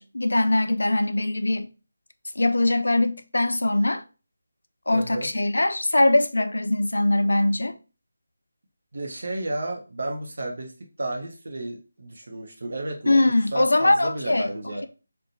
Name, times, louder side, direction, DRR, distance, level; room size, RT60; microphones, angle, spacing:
voice 1, 0.0-1.7 2.4-4.0 4.9-7.8 13.1-14.5, left 2 dB, 80° left, 0.4 m, -22 dB
voice 2, 4.9-5.3 8.9-10.7 11.0-14.8, right 2 dB, 60° right, 0.8 m, -32 dB
2.8 x 2.2 x 2.6 m
figure-of-eight pair, 165°, 0 cm